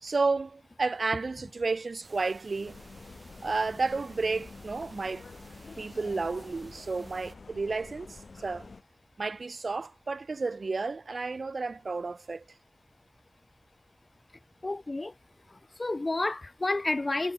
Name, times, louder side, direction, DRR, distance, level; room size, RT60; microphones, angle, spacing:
voice 1, 0.0-2.8 3.4-5.2 5.8-8.7 9.2-12.4, right 3 dB, 75° right, 1.1 m, -31 dB
sound 1, 2.0-7.4, right 2 dB, 45° right, 5.7 m, -54 dB
sound 2, 2.6-8.8, left 4 dB, 90° left, 3.2 m, -48 dB
voice 2, 14.6-15.1 15.8-17.3, left 2 dB, 45° left, 0.3 m, -30 dB
wide cardioid pair, 80°, 0 cm